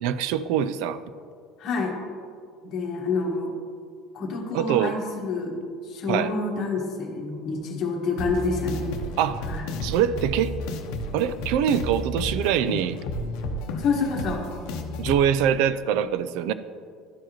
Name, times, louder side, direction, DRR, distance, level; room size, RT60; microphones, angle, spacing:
voice 1, 0.0-1.0 4.5-5.0 6.1-6.3 9.2-9.5 9.8-10.6 11.1-13.0 15.0-16.5, right 9 dB, 70° right, 14 dB, 0.3 m, -24 dB
voice 2, 1.6-1.9 2.6-3.5 4.1-5.6 5.9-8.9 9.5-9.6 13.8-14.4, left 4 dB, 40° left, -1 dB, 1.3 m, -28 dB
sound 1, 8.2-15.2, left 1 dB, 70° left, 0.7 m, -32 dB
12.5 x 4.7 x 3.0 m, 2.2 s
cardioid pair, 175°, 0 cm